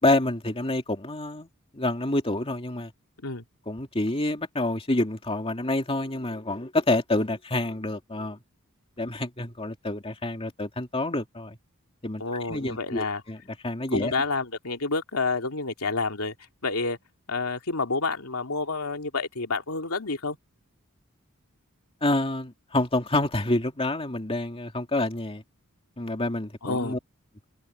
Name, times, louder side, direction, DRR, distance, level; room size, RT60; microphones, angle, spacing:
voice 1, 0.0-1.5 1.7-2.9 3.7-8.4 9.0-11.6 12.0-12.2 12.5-13.4 13.6-14.1 22.0-25.4 26.0-27.0, left 2 dB, 25° left, 2.6 m, -27 dB
voice 2, 12.2-13.2 13.9-16.3 16.6-17.0 17.3-20.4 26.6-27.0, left 3 dB, 85° left, 2.6 m, -29 dB
head